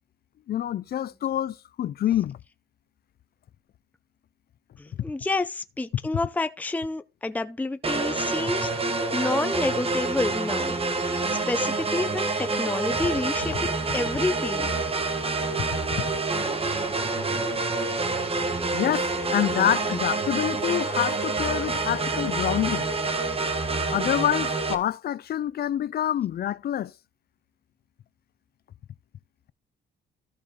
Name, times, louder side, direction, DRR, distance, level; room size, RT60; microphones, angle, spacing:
voice 1, 0.5-2.4 18.7-22.9 23.9-26.9, left 11 dB, 50° left, 0.5 m, -26 dB
voice 2, 4.8-10.8 11.3-14.7, left 2 dB, 10° left, 0.6 m, -29 dB
sound 1, 7.8-24.7, right 3 dB, 30° right, 1.4 m, -27 dB
14.0 x 4.6 x 3.6 m
cardioid pair, 90°, 20 cm